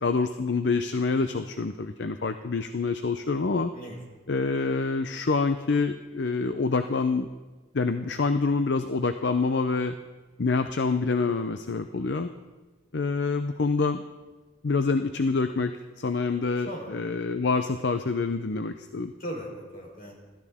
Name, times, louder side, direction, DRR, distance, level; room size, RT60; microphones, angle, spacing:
voice 1, 0.0-3.7 4.3-7.3 7.7-9.9 10.4-12.3 12.9-14.0 14.6-19.1, left 4 dB, 65° left, 9 dB, 0.6 m, -26 dB
voice 2, 16.7-17.1 19.2-20.1, equal, 50° left, -1 dB, 3.9 m, -38 dB
26.0 x 13.5 x 3.6 m, 1.3 s
head